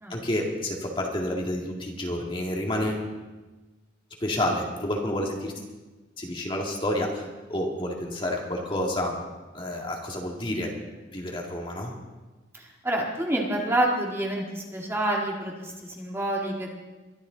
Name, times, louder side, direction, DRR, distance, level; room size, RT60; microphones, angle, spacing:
voice 1, 0.1-3.0 4.2-5.5 6.2-9.2 9.5-10.7 11.1-11.9, left 1 dB, 25° left, 0 dB, 2.0 m, -29 dB
voice 2, 12.5-16.7, right 1 dB, 15° right, -2 dB, 1.9 m, -28 dB
23.0 x 12.0 x 4.0 m, 1.2 s
head